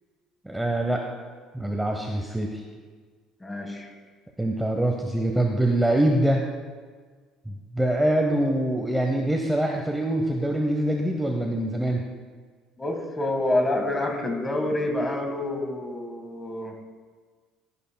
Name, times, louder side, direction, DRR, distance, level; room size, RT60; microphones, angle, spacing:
voice 1, 0.4-1.1 1.5-2.6 4.4-6.5 7.5-12.0, right 1 dB, 5° right, 1 dB, 0.8 m, -24 dB
voice 2, 3.4-3.9 12.8-16.7, left 1 dB, 15° left, 4 dB, 1.5 m, -27 dB
12.5 x 11.0 x 2.2 m, 1.5 s
cardioid pair, 110°, 0 cm